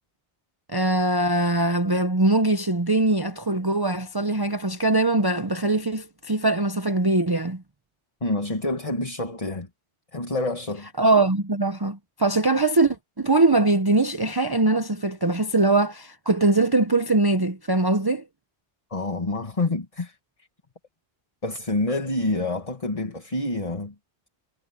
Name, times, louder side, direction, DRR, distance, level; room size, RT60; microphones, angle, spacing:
voice 1, 0.7-7.6 11.0-18.2, right 2 dB, 20° right, 0.8 m, -22 dB
voice 2, 8.2-9.7 10.1-10.9 18.9-20.2 21.4-23.9, left 2 dB, 30° left, 1.7 m, -27 dB
omnidirectional pair, 1.2 m